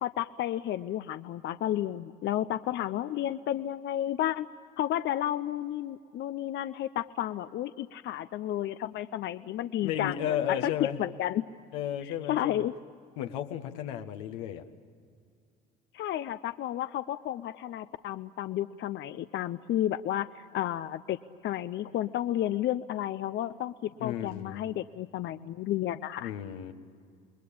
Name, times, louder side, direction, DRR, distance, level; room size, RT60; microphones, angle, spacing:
voice 1, 0.0-4.5 4.8-11.4 12.0-12.8 15.9-21.2 21.4-26.3, left 12 dB, 60° left, 12 dB, 0.7 m, -32 dB
voice 2, 9.8-11.0 11.7-12.6 13.2-14.6 24.0-24.6 26.2-26.7, left 10 dB, 90° left, 6 dB, 1.4 m, -33 dB
29.0 x 21.0 x 8.6 m, 2.1 s
supercardioid pair, 75°, 21 cm